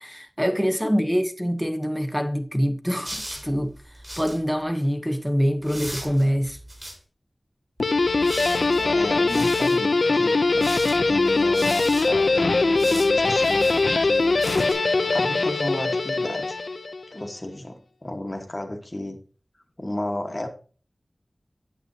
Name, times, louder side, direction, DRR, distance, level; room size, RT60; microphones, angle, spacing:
voice 1, 0.0-3.8 4.2-6.6, equal, ahead, 0.7 m, -25 dB
sound 1, 3.0-4.4 5.6-7.0 7.8-9.8 10.5-14.7, equal, 30° right, 3.9 m, -38 dB
Guitar, 7.8-17.1, left 3 dB, 80° left, 0.4 m, -21 dB
voice 2, 8.7-10.7 11.1-14.4 15.1-16.6 17.1-19.2 19.8-20.5, left 1 dB, 30° left, 1.2 m, -33 dB
8.8 x 6.7 x 2.7 m
wide cardioid pair, 45°, 0 cm